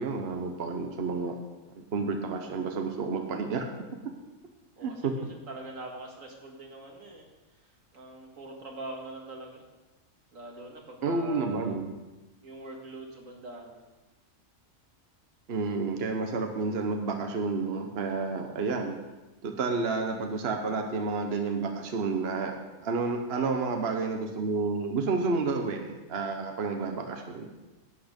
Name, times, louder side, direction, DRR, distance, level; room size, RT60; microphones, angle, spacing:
voice 1, 0.0-1.4 1.8-3.7 4.8-5.1 11.0-11.9 15.5-19.0 19.4-22.6 22.8-27.5, right 4 dB, 55° right, 4 dB, 1.1 m, -30 dB
voice 2, 4.8-7.2 7.9-9.6 10.3-11.8 12.4-13.8 23.3-23.5, right 2 dB, 80° right, 0 dB, 2.3 m, -43 dB
11.0 x 8.5 x 5.2 m, 1.1 s
omnidirectional pair, 1.4 m